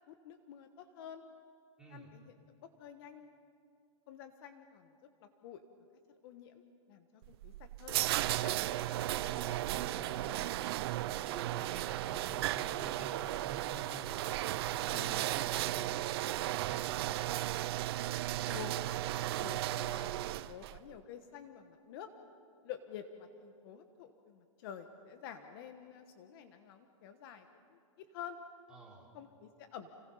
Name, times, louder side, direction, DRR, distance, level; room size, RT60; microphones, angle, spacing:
voice 1, 0.1-1.3 1.9-2.3 2.6-3.3 4.1-4.9 5.2-5.6 6.2-6.6 6.9-8.5 14.9-15.3 18.5-18.8 19.4-22.1 22.6-28.4 29.1-30.0, left 9 dB, 45° left, 7 dB, 1.4 m, -49 dB
voice 2, 1.8-2.1 9.1-10.5 11.1-17.3 28.7-29.1, right 2 dB, 5° right, -4 dB, 4.1 m, -50 dB
sound 1, 7.2-20.8, right 15 dB, 50° right, 0.6 m, -35 dB
29.5 x 19.0 x 5.6 m, 2.3 s
hypercardioid pair, 150°, 17 cm